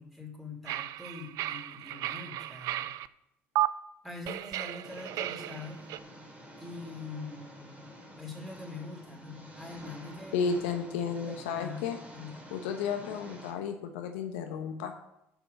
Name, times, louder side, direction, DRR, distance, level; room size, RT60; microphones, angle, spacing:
voice 1, 0.0-2.9 4.0-5.8 6.6-7.9 8.2-10.7 11.2-12.6, left 3 dB, ahead, -1 dB, 3.5 m, -44 dB
sound 1, 0.7-3.1 3.6-3.7 4.3-6.0, right 14 dB, 65° right, 0.4 m, -34 dB
Engine, 4.8-13.5, right 1 dB, 20° right, 2.8 m, -49 dB
voice 2, 10.3-12.0 12.5-14.9, left 6 dB, 85° left, 6 dB, 0.9 m, -33 dB
7.2 x 6.0 x 7.0 m, 0.85 s
hypercardioid pair, 70°, 6 cm